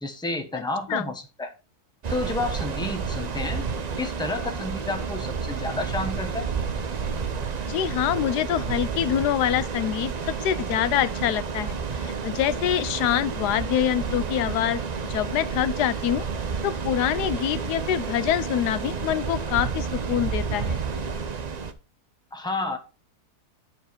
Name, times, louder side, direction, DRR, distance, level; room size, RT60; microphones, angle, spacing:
voice 1, 0.0-1.5 2.1-3.7 4.0-6.5 22.3-22.8, left 2 dB, 5° left, 1.0 m, -30 dB
sound 1, 2.0-21.7, right 5 dB, 50° right, 0.4 m, -30 dB
voice 2, 7.7-16.2 16.6-20.8, left 11 dB, 90° left, 1.2 m, -25 dB
10.5 x 4.5 x 4.4 m
omnidirectional pair, 1.7 m